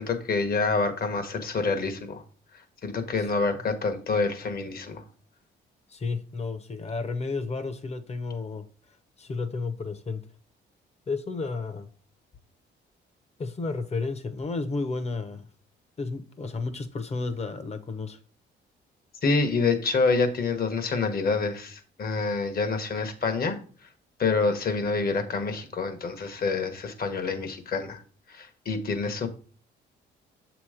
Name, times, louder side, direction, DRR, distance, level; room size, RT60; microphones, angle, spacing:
voice 1, 0.0-2.2 2.8-5.0 19.2-23.6 24.2-28.0 28.3-29.3, left 4 dB, 50° left, 1.1 m, -27 dB
voice 2, 5.9-8.7 9.2-10.2 11.1-11.9 13.4-15.5 16.0-18.2, left 3 dB, 35° left, 0.8 m, -32 dB
7.1 x 3.0 x 4.9 m
cardioid pair, 90°, 20 cm